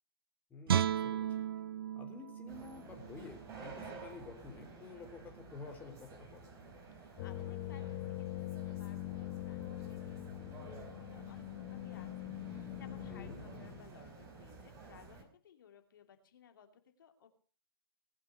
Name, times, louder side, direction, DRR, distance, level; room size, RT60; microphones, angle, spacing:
voice 1, 0.5-1.5 2.0-6.4 13.1-13.4, left 4 dB, 15° left, 2 dB, 3.7 m, -50 dB
Guitar, 0.7-3.8 4.2-4.4, right 9 dB, 65° right, 0.7 m, -35 dB
sound 1, 2.5-15.2, right 4 dB, 25° right, 4.5 m, -52 dB
voice 2, 7.0-17.3, left 7 dB, 55° left, 6 dB, 2.8 m, -61 dB
sound 2, 7.2-13.8, left 15 dB, 30° left, 0.8 m, -43 dB
19.5 x 8.3 x 6.8 m, 0.42 s
hypercardioid pair, 135°, 13 cm